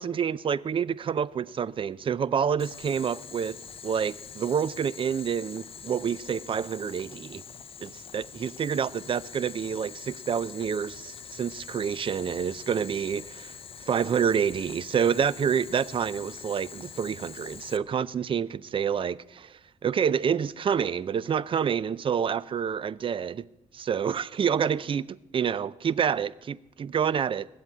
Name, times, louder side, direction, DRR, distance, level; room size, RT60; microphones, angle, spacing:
voice 1, 0.0-7.4 7.8-13.5 13.8-23.5 23.7-27.5, right 7 dB, 40° right, 0.5 m, -28 dB
Boiling, 2.6-17.8, left 7 dB, 40° left, 0.7 m, -44 dB
19.0 x 7.7 x 8.4 m
cardioid pair, 105°, 14 cm